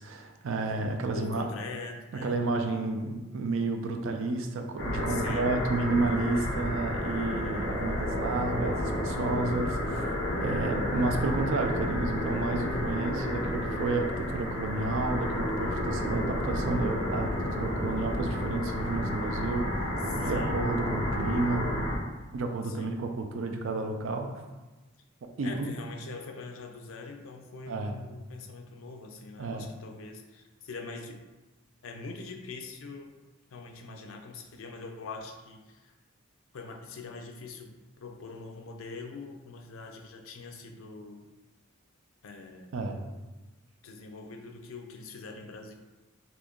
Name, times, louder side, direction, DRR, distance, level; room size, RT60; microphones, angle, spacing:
voice 1, 0.0-1.5 2.2-10.1 10.4-19.9 20.1-21.7 22.3-24.3 25.4-25.7 27.7-28.0 29.4-29.7 42.7-43.0, right 3 dB, 65° right, 4 dB, 0.4 m, -31 dB
voice 2, 1.1-2.4 5.1-5.5 20.0-20.6 22.6-23.0 25.4-31.2 31.8-33.2 33.5-35.9 36.5-41.3 42.2-42.8 43.8-45.7, left 3 dB, 75° left, 4 dB, 0.4 m, -43 dB
sound 1, 4.8-22.0, left 1 dB, 50° left, 0.9 m, -31 dB
2.8 x 2.5 x 3.5 m, 1.2 s
head